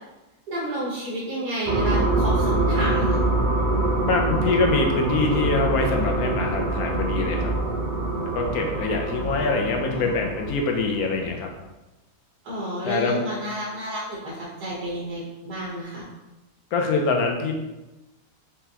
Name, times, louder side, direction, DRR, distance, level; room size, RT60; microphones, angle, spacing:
voice 1, 0.5-3.1 9.1-10.1 12.4-16.0, right 1 dB, 85° right, -7 dB, 1.6 m, -31 dB
sound 1, 1.7-11.4, right 2 dB, 50° right, 0.6 m, -25 dB
voice 2, 4.0-7.5 8.3-11.5 12.8-13.2 16.7-17.5, left 4 dB, 75° left, 2 dB, 1.1 m, -24 dB
4.5 x 3.7 x 2.9 m, 1.1 s
omnidirectional pair, 1.6 m